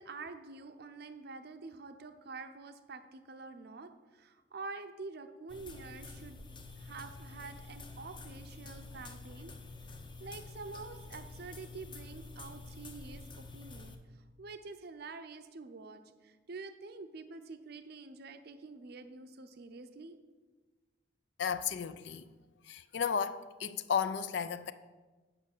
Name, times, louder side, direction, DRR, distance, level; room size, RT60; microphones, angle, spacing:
voice 1, 0.0-6.4 6.8-9.5 10.2-14.0 14.4-20.2, right 3 dB, 55° right, 0.6 m, -47 dB
sound 1, 5.5-13.9, left 3 dB, 25° left, 0.8 m, -48 dB
voice 2, 21.4-22.3 22.6-24.7, left 7 dB, 60° left, 0.4 m, -34 dB
8.7 x 5.2 x 7.1 m
head